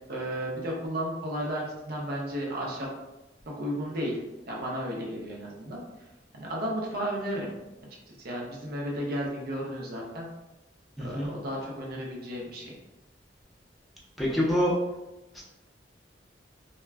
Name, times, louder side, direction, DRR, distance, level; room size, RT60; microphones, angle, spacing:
voice 1, 0.1-2.9 3.6-4.2 4.5-5.8 6.3-7.5 8.2-10.3 11.0-12.7, equal, 55° right, -2 dB, 0.7 m, -33 dB
voice 2, 11.0-11.3 14.2-14.7 15.3-15.4, equal, ahead, -5 dB, 0.5 m, -26 dB
2.2 x 2.1 x 3.3 m, 0.99 s
head